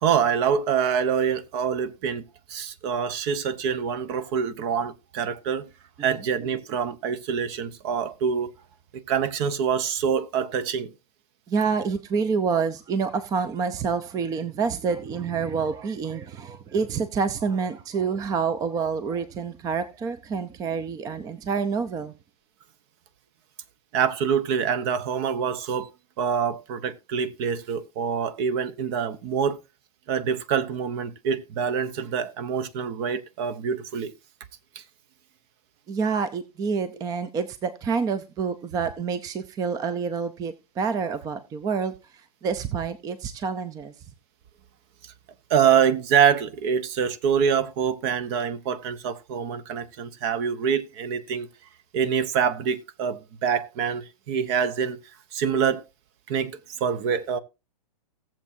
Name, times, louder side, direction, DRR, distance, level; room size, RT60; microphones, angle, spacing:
voice 1, 0.0-2.2 2.5-5.7 6.0-8.5 8.9-10.9 23.9-25.9 26.2-29.6 30.1-34.1 34.7-34.8 45.0-45.1 45.5-51.5 51.9-55.0 55.3-55.8 56.3-57.4, right 7 dB, 40° right, 0.9 m, -25 dB
voice 2, 11.5-22.1 35.9-43.9, right 5 dB, 15° right, 0.6 m, -28 dB
17.5 x 7.3 x 2.7 m
hypercardioid pair, 130°, 20 cm